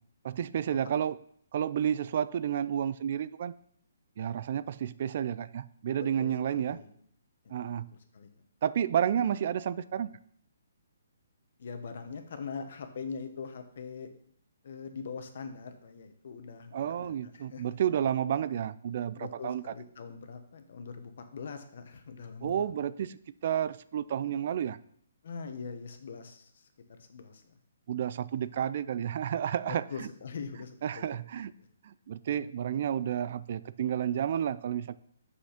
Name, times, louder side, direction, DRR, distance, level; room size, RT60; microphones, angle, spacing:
voice 1, 0.2-1.2 1.5-3.5 4.2-6.8 7.5-7.9 8.6-10.1 16.7-19.7 22.4-24.8 27.9-30.1 30.8-31.5 31.8-35.0, right 9 dB, 45° right, 16 dB, 0.3 m, -31 dB
voice 2, 6.0-6.9 7.4-7.6 8.1-8.3 11.6-14.1 14.6-17.7 19.1-22.8 25.2-27.4 28.3-28.5 29.6-31.0 31.6-31.7 32.3-32.4, left 5 dB, 60° left, 7 dB, 1.2 m, -42 dB
6.3 x 5.8 x 5.8 m, 0.64 s
hypercardioid pair, 160°, 0 cm